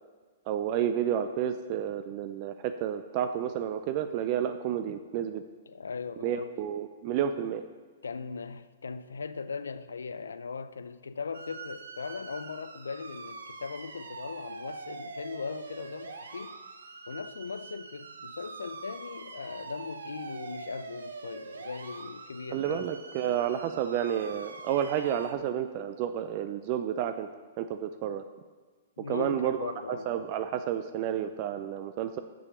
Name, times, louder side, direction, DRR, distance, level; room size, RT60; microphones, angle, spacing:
voice 1, 0.5-5.4 6.2-7.6 22.5-27.3 27.6-28.2 29.1-32.2, right 9 dB, 45° right, 0.4 m, -30 dB
voice 2, 5.7-6.5 8.0-16.6 17.1-22.9 29.0-30.1, left 5 dB, 85° left, 0.4 m, -39 dB
sound 1, 11.3-25.3, right 4 dB, 85° right, 0.7 m, -44 dB
6.3 x 5.7 x 6.9 m
hypercardioid pair, 120°, 0 cm